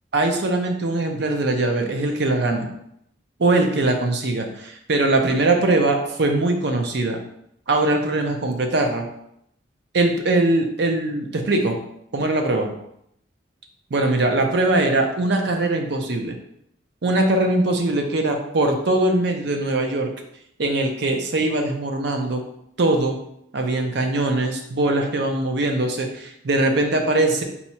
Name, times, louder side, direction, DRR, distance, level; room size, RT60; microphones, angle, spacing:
voice 1, 0.1-2.7 3.4-7.2 7.7-9.0 9.9-11.8 12.1-12.7 13.9-16.4 17.0-20.1 20.6-22.4 22.8-23.2 23.5-27.4, right 2 dB, 60° right, 4 dB, 0.6 m, -21 dB
4.1 x 2.4 x 4.2 m, 0.74 s
head